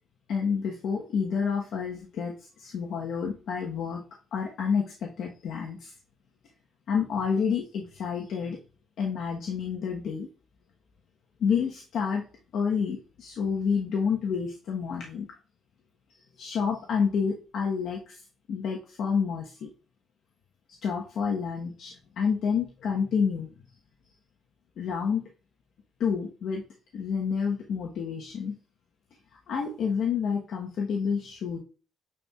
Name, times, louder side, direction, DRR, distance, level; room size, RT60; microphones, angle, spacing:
voice 1, 0.3-2.3 2.6-4.0 4.3-5.9 6.9-8.6 9.0-10.3 11.4-12.2 12.5-15.3 16.4-18.2 18.5-19.7 20.8-23.5 24.8-25.2 26.0-26.6 26.9-28.6 29.5-31.6, left 6 dB, 70° left, -1 dB, 1.1 m, -29 dB
9.0 x 4.4 x 2.4 m, 0.37 s
cardioid pair, 90°, 0 cm